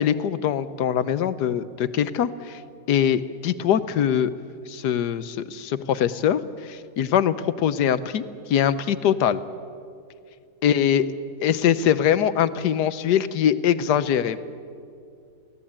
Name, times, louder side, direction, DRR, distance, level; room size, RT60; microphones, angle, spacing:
voice 1, 0.0-2.6 2.9-4.3 4.7-8.2 8.5-9.4 10.6-11.1 11.4-14.4, left 9 dB, 80° left, 13 dB, 1.4 m, -22 dB
24.0 x 17.0 x 8.8 m, 2.4 s
omnidirectional pair, 1.7 m